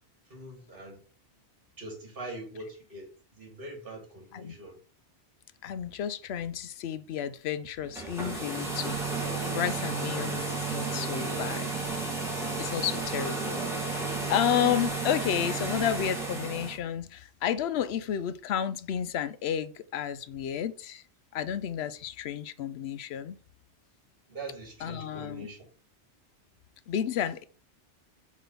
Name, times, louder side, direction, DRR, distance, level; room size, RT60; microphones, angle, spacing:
voice 1, 0.3-1.0 1.8-4.8 24.3-25.7, right 2 dB, 50° right, 2.4 m, -43 dB
voice 2, 5.6-9.0 9.5-12.0 12.6-14.0 14.3-21.0 21.3-23.3 24.8-25.5 26.9-27.4, left 9 dB, 70° left, 0.8 m, -31 dB
sound 1, 7.9-16.8, right 3 dB, ahead, 1.7 m, -32 dB
5.9 x 3.1 x 5.3 m
omnidirectional pair, 1.2 m